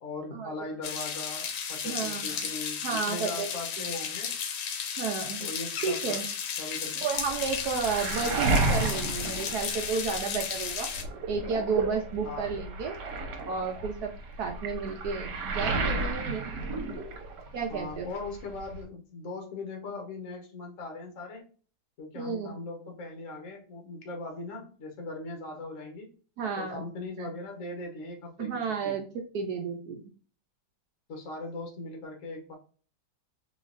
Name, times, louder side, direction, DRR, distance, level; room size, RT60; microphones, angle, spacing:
voice 1, 0.0-4.4 5.4-6.2 6.6-7.1 8.1-8.6 12.2-12.6 17.7-21.5 22.0-26.1 26.6-28.5 28.8-29.0 31.1-32.5, left 3 dB, 50° left, 2 dB, 1.3 m, -39 dB
sound 1, 0.8-11.0, left 7 dB, 75° left, 1.3 m, -34 dB
voice 2, 1.8-2.4 2.8-3.5 5.0-5.5 5.8-6.3 7.0-10.9 11.3-13.0 13.4-16.4 17.5-18.1 22.1-22.5 26.4-26.8 27.2-27.3 28.4-29.0 29.3-30.0, right 5 dB, 70° right, 3 dB, 1.1 m, -32 dB
Waves surf, 7.1-10.4 10.7-17.6 17.9-18.8, right 2 dB, 85° right, 1.5 m, -32 dB
3.8 x 3.1 x 2.4 m, 0.40 s
omnidirectional pair, 1.8 m